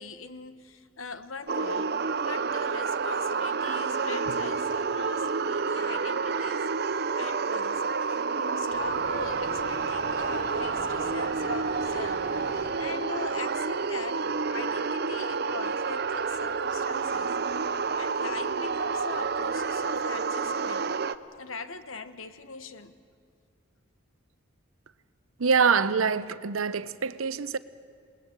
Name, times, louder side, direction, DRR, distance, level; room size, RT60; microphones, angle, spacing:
voice 1, 0.0-12.2 12.8-14.2 14.5-17.4 18.0-20.9 21.4-23.0, left 4 dB, 80° left, 1.2 m, -41 dB
sound 1, 1.5-21.1, right 5 dB, 50° right, 0.6 m, -29 dB
sound 2, 8.7-20.0, equal, 45° left, 6.9 m, -46 dB
voice 2, 25.4-27.6, right 5 dB, 85° right, 0.8 m, -25 dB
28.0 x 20.0 x 8.1 m
head